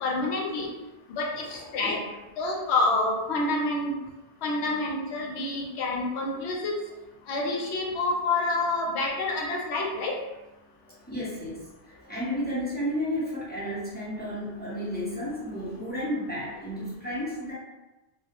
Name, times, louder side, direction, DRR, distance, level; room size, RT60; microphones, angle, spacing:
voice 1, 0.0-0.7 1.2-1.3 1.7-2.0 2.4-3.9 4.4-6.8 7.3-10.1, left 2 dB, 75° left, -1 dB, 0.8 m, -27 dB
voice 2, 1.4-2.1 10.8-17.5, equal, 10° left, -9 dB, 0.5 m, -33 dB
2.3 x 2.0 x 2.8 m, 1.1 s
omnidirectional pair, 1.1 m